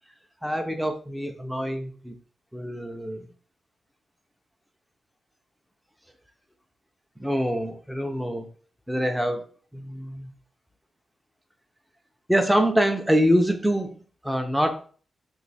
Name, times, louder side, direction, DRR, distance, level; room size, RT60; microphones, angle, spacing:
voice 1, 0.4-2.1 2.5-3.3 7.2-8.5 8.9-9.5 9.7-10.3 12.3-13.9 14.2-14.8, equal, ahead, 4 dB, 0.4 m, -25 dB
3.1 x 2.6 x 4.0 m, 0.41 s
wide cardioid pair, 140°, 0 cm